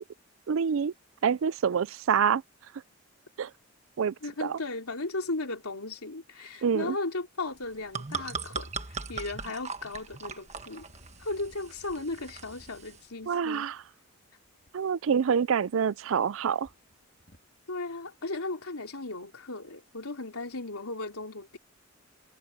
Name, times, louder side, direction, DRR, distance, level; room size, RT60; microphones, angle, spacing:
voice 1, 0.5-0.9 1.2-2.4 3.4-3.5 4.0-4.1 4.4-4.6 6.6-7.0 13.3-13.8 14.7-16.7, right 7 dB, 70° right, 0.4 m, -26 dB
voice 2, 4.2-10.9 11.2-13.7 17.7-21.6, left 2 dB, 90° left, 3.6 m, -36 dB
sound 1, 7.6-13.0, right 5 dB, 30° right, 1.5 m, -39 dB
sound 2, 10.5-14.7 15.5-16.3 16.6-17.5, equal, 45° left, 3.1 m, -59 dB
head